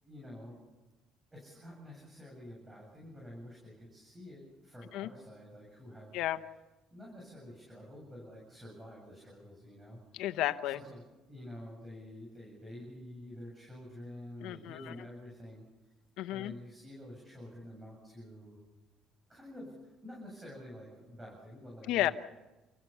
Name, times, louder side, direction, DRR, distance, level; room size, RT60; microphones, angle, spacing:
voice 1, 0.0-0.6 1.3-6.2 6.9-10.0 10.6-15.6 16.3-18.6 19.3-22.1, left 1 dB, 15° right, -2 dB, 7.8 m, -49 dB
voice 2, 10.1-10.8 14.4-14.9 16.2-16.5 21.9-22.1, left 14 dB, 80° left, 10 dB, 1.0 m, -32 dB
30.0 x 15.0 x 7.2 m, 1.1 s
cardioid pair, 120°, 0 cm